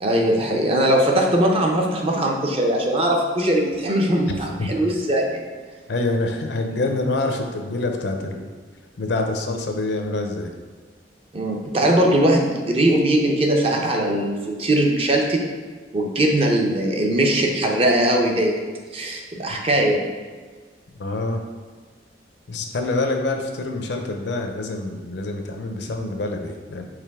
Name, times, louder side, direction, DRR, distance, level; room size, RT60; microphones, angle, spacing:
voice 1, 0.0-5.4 11.3-15.4 15.9-18.6 18.9-20.0, right 1 dB, 30° right, 1 dB, 0.6 m, -20 dB
voice 2, 5.9-8.5 9.0-10.5 19.5-19.6 21.0-21.4 22.5-26.8, left 2 dB, 65° left, 4 dB, 0.5 m, -26 dB
4.9 x 3.1 x 3.5 m, 1.5 s
head